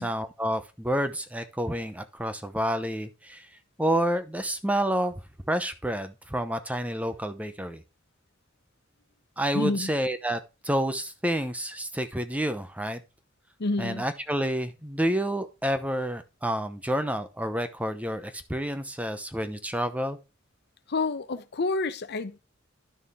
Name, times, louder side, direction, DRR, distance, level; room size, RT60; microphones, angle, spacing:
voice 1, 0.0-3.5 3.8-5.1 5.5-7.8 9.4-13.0 13.8-20.2, equal, 5° right, 0.8 m, -29 dB
voice 2, 9.5-9.9 13.6-14.1 20.9-22.4, left 3 dB, 55° left, 0.7 m, -29 dB
11.0 x 6.3 x 3.6 m
head